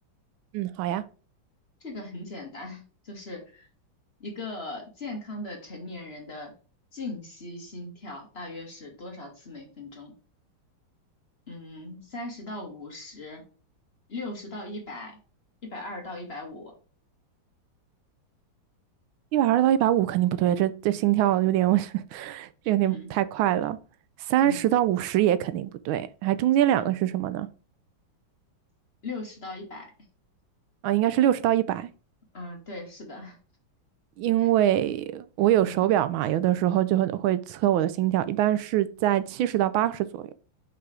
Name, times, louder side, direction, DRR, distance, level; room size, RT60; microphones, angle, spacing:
voice 1, 0.5-1.0 19.3-23.8 24.3-27.5 30.8-31.9 34.2-40.2, right 12 dB, 85° right, 1.4 m, -24 dB
voice 2, 1.8-3.7 4.2-6.5 6.9-10.1 11.5-13.4 14.1-15.2 15.6-16.7 22.8-23.1 24.4-24.7 26.7-26.9 29.0-29.9 32.3-33.4 34.4-34.5 35.6-35.9, left 2 dB, 35° left, 1.5 m, -39 dB
5.6 x 3.9 x 4.8 m
omnidirectional pair, 2.2 m